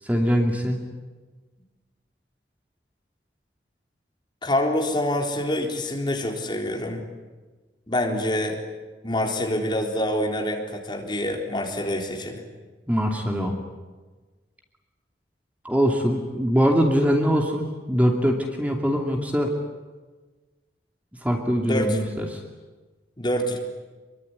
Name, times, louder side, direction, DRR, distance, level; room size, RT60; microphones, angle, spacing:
voice 1, 0.0-0.8 12.9-13.5 15.6-19.5 21.2-22.4, equal, 10° right, 2 dB, 2.6 m, -22 dB
voice 2, 4.4-7.0 7.9-8.6 9.0-12.4 21.6-22.0 23.2-23.6, left 1 dB, 25° left, 2 dB, 3.9 m, -26 dB
26.0 x 23.5 x 9.8 m, 1.3 s
head